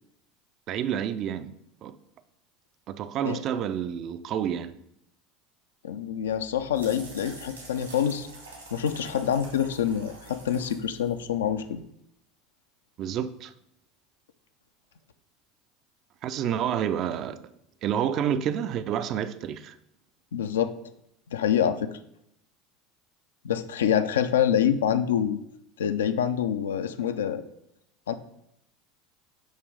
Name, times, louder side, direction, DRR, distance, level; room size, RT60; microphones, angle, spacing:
voice 1, 0.7-1.5 1.8-2.0 2.9-4.7 13.0-13.5 16.2-17.5 17.8-19.7, right 9 dB, 40° right, 0.4 m, -29 dB
voice 2, 5.8-8.3 8.7-11.8 20.3-20.7 21.3-21.9 23.4-25.4 25.8-27.4 28.1-28.2, left 9 dB, 70° left, 0.4 m, -26 dB
sound 1, 6.2-11.8, right 3 dB, 80° right, 1.6 m, -46 dB
6.3 x 3.0 x 5.1 m
figure-of-eight pair, 75°, 0 cm